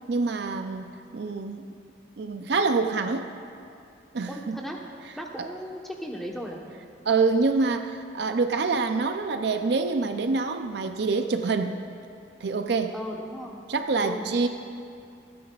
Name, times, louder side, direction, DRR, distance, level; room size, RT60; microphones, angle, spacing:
voice 1, 0.1-1.7 2.2-3.3 4.1-4.6 5.4-5.5 7.0-11.7 12.4-12.9 13.7-14.5, right 4 dB, 60° right, 7 dB, 0.5 m, -26 dB
voice 2, 4.3-4.8 5.1-6.6 12.9-13.6 14.0-14.3, equal, ahead, -1 dB, 1.0 m, -36 dB
27.0 x 9.3 x 2.4 m, 2.5 s
head